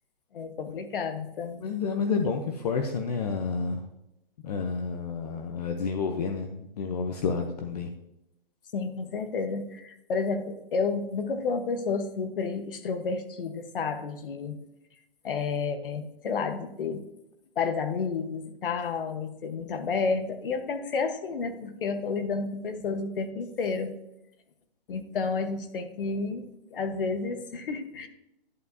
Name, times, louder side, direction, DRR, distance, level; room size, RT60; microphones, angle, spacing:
voice 1, 0.3-1.7 8.7-14.6 15.2-17.0 17.6-23.9 24.9-28.1, left 4 dB, 65° left, 9 dB, 1.2 m, -31 dB
voice 2, 1.6-3.8 4.4-7.9, left 5 dB, 40° left, 5 dB, 0.7 m, -30 dB
11.0 x 7.0 x 2.7 m, 0.84 s
hypercardioid pair, 160°, 29 cm